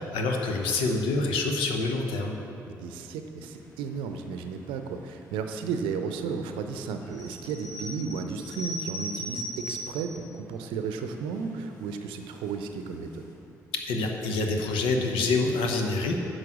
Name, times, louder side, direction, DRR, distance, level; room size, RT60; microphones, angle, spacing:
voice 1, 0.0-2.4 13.7-16.1, left 3 dB, 65° left, 3 dB, 1.0 m, -26 dB
voice 2, 2.7-13.3, right 5 dB, 65° right, 7 dB, 0.7 m, -34 dB
sound 1, 7.0-10.2 10.8-10.9 11.1-11.5 12.1-12.5 12.9-13.0 13.2-13.3, left 1 dB, 90° left, 1.1 m, -38 dB
10.5 x 6.4 x 6.1 m, 3.0 s
figure-of-eight pair, 40°, 9 cm